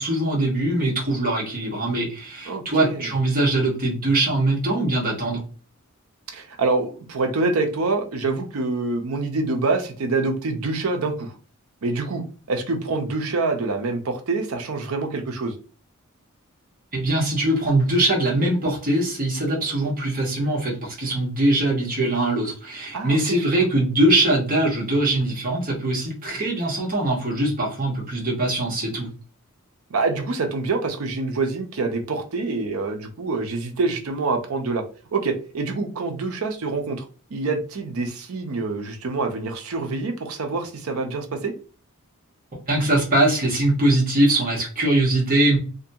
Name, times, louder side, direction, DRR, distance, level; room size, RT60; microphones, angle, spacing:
voice 1, 0.0-5.4 16.9-29.1 42.7-45.6, right 1 dB, 40° right, -2 dB, 1.0 m, -22 dB
voice 2, 2.5-3.1 6.3-11.3 11.8-15.5 22.9-23.6 29.9-34.8 35.1-37.0 37.3-41.5, right 3 dB, 70° right, 5 dB, 0.6 m, -26 dB
2.6 x 2.2 x 2.6 m, 0.39 s
head